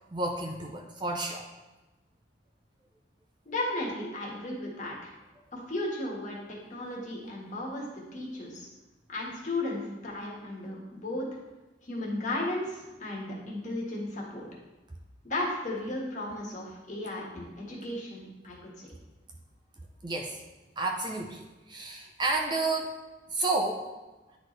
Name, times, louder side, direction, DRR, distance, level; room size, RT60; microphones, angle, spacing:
voice 1, 0.1-1.5 20.0-20.4 20.8-22.9 23.3-23.9, right 2 dB, 25° right, 2 dB, 0.5 m, -31 dB
voice 2, 3.4-5.2 5.5-8.7 9.1-11.3 11.8-14.4 15.2-18.9, left 1 dB, 40° left, -3 dB, 1.5 m, -35 dB
10.0 x 4.0 x 3.2 m, 1.1 s
head